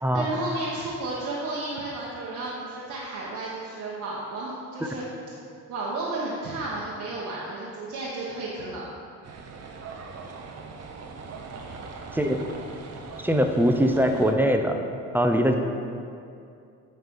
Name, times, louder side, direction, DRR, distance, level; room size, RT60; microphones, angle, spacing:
voice 1, 0.1-5.0 5.7-8.9 11.5-11.8, right 2 dB, 75° right, -6 dB, 1.1 m, -33 dB
sound 1, 9.2-14.3, right 4 dB, 55° right, 0.8 m, -41 dB
voice 2, 12.1-12.4 13.2-14.8 15.1-15.6, equal, 5° right, 4 dB, 0.5 m, -22 dB
9.6 x 3.3 x 5.3 m, 2.5 s
cardioid pair, 90°, 30 cm